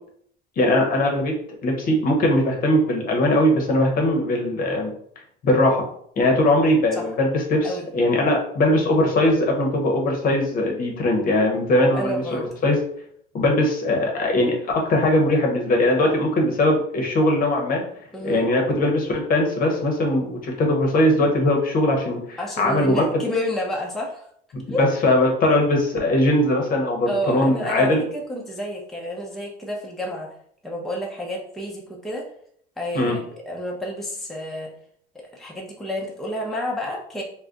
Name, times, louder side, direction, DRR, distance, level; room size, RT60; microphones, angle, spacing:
voice 1, 0.6-1.4 1.6-4.9 5.4-5.8 6.2-12.8 13.3-17.8 18.2-23.0 24.5-28.0 32.9-33.2, left 1 dB, 45° left, 1 dB, 0.8 m, -20 dB
voice 2, 11.9-12.5 18.1-18.4 22.4-24.3 24.7-25.1 27.1-30.3 30.6-32.3 32.8-34.7 35.1-37.2, equal, ahead, -2 dB, 0.5 m, -30 dB
2.4 x 2.1 x 3.7 m, 0.65 s
supercardioid pair, 105°, 21 cm